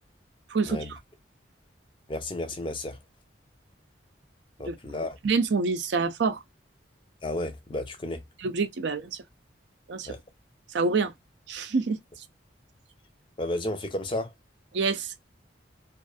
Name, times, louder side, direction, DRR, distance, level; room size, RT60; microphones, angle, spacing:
voice 1, 0.5-0.8 4.7-4.8 5.2-6.4 8.4-9.2 9.9-10.1 10.7-11.1 11.5-12.0 14.7-15.1, right 4 dB, 65° right, 0.5 m, -26 dB
voice 2, 2.1-3.0 4.6-5.2 7.2-8.2 10.0-10.2 13.4-14.3, left 1 dB, 25° left, 0.5 m, -32 dB
2.4 x 2.4 x 2.4 m
head